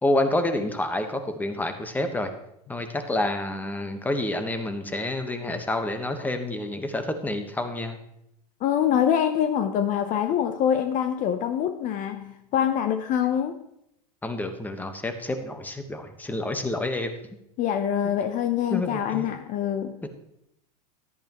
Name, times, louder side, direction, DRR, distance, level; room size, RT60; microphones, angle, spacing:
voice 1, 0.0-2.3 2.7-8.0 14.2-17.1 18.7-19.3 20.0-20.1, left 1 dB, 10° left, 7 dB, 1.3 m, -28 dB
voice 2, 8.6-13.6 17.6-20.0, left 9 dB, 40° left, 9 dB, 0.8 m, -25 dB
14.0 x 11.0 x 3.1 m, 0.79 s
hypercardioid pair, 110°, 20 cm